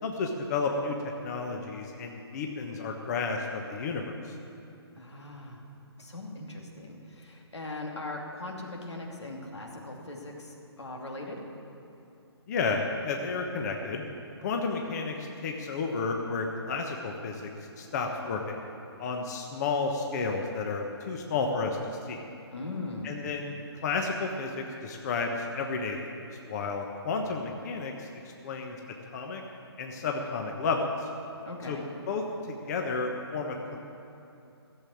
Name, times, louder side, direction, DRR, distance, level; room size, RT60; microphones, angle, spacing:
voice 1, 0.0-4.3 12.5-14.0 14.4-17.5 17.8-18.6 19.0-21.8 22.1-22.2 23.0-23.5 23.8-26.1 26.5-28.1 28.4-28.8 29.1-29.4 29.8-31.1 31.7-31.8 32.1-33.8, left 4 dB, 40° left, 2 dB, 1.2 m, -32 dB
voice 2, 5.0-5.6 6.0-11.4 22.5-23.1 31.4-31.9, left 2 dB, 90° left, 0 dB, 2.7 m, -40 dB
15.5 x 7.8 x 8.6 m, 2.8 s
hypercardioid pair, 150°, 14 cm